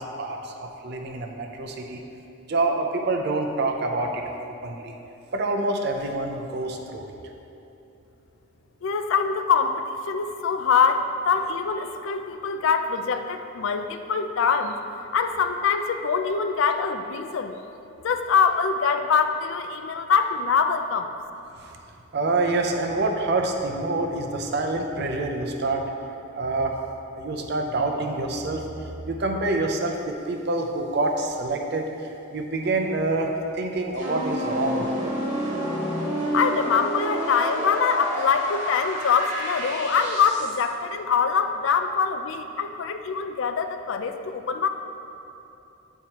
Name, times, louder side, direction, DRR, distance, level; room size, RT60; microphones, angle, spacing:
voice 1, 0.0-2.0 2.5-4.2 4.6-4.9 5.3-7.1 22.1-25.8 26.4-26.7 27.1-28.6 29.1-31.8 32.3-35.1, right 2 dB, 50° right, 3 dB, 0.5 m, -26 dB
voice 2, 8.8-14.8 15.1-17.5 18.0-21.1 36.3-44.7, left 6 dB, 65° left, 8 dB, 0.3 m, -24 dB
sound 1, 33.9-40.6, equal, 30° right, 1.3 m, -29 dB
8.7 x 4.6 x 2.9 m, 2.8 s
head